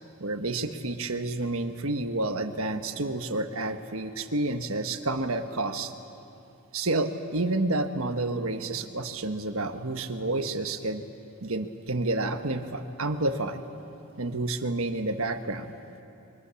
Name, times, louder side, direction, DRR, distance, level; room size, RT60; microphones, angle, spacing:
voice 1, 0.2-5.9 6.7-11.0 11.4-13.6 14.2-15.7, right 2 dB, 65° right, 7 dB, 1.4 m, -29 dB
28.5 x 23.5 x 7.1 m, 2.8 s
head